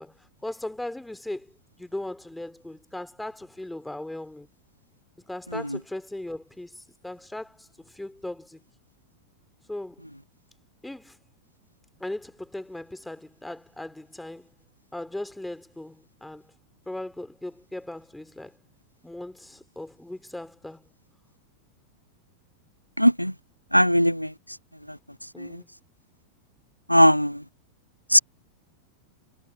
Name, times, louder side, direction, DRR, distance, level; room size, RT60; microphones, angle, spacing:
voice 1, 0.0-1.5 1.8-4.5 5.3-8.6 9.7-10.0 10.8-11.2 12.0-14.5 14.9-16.5 16.9-18.6 19.0-20.9 25.3-25.7, left 1 dB, 5° left, 3.3 m, -38 dB
voice 2, 23.0-23.3 23.7-24.3 25.4-25.5 26.9-27.4 28.1-28.2, equal, 90° left, 0.3 m, -18 dB
figure-of-eight pair, 90°, 0 cm